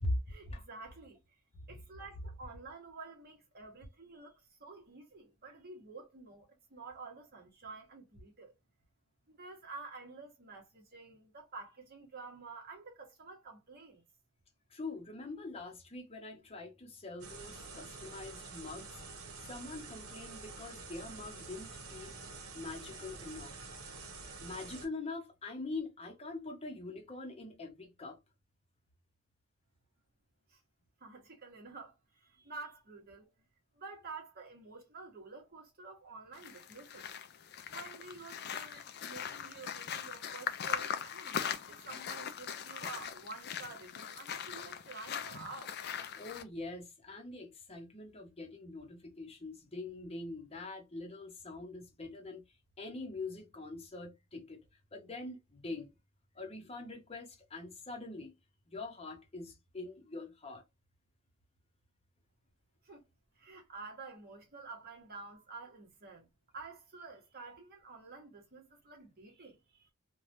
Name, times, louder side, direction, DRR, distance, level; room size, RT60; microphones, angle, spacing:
voice 1, 0.3-1.2 1.7-8.5 9.3-14.0 30.5-30.6 31.0-33.2 33.8-37.1 37.7-45.7 62.8-63.0 63.3-66.3 66.5-69.9, right 3 dB, 45° right, 1.1 m, -50 dB
voice 2, 14.7-19.0 19.5-22.2 22.5-23.5 24.4-28.2 46.2-52.4 52.8-54.6 54.9-55.9 56.3-58.3 58.7-60.6, left 2 dB, 30° left, 0.8 m, -43 dB
sound 1, 17.2-24.9, right 3 dB, 85° right, 0.9 m, -48 dB
sound 2, 36.3-46.4, left 8 dB, 50° left, 0.4 m, -41 dB
3.2 x 2.3 x 2.6 m
head